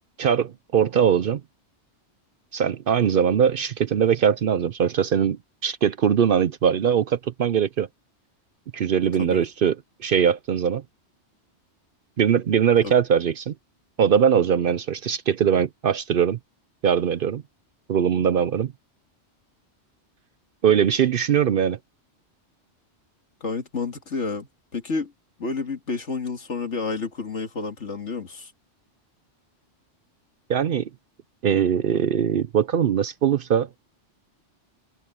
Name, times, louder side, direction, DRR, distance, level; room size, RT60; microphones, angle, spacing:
voice 1, 0.2-1.4 2.5-7.9 8.7-9.7 10.0-10.8 12.2-13.5 14.0-16.4 16.8-17.4 17.9-18.7 20.6-21.8 30.5-30.9 31.4-33.7, right 8 dB, 55° right, 0.7 m, -21 dB
voice 2, 23.4-25.1 25.4-28.5, left 4 dB, 75° left, 2.5 m, -30 dB
omnidirectional pair, 1.2 m